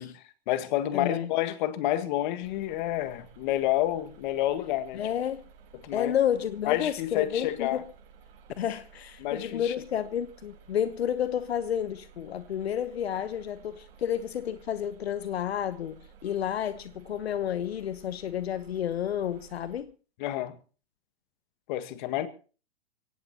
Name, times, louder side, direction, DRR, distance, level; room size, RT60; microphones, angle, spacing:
voice 1, 0.0-5.0 5.8-6.1 6.7-7.8 9.2-9.7 20.2-20.6 21.7-22.3, left 13 dB, 50° left, 1.9 m, -29 dB
voice 2, 0.9-1.3 4.9-5.4 5.9-7.9 8.6-19.9, left 9 dB, 80° left, 1.1 m, -31 dB
sound 1, 2.4-19.8, right 6 dB, 65° right, 7.6 m, -55 dB
23.0 x 17.5 x 3.0 m
hypercardioid pair, 130°, 31 cm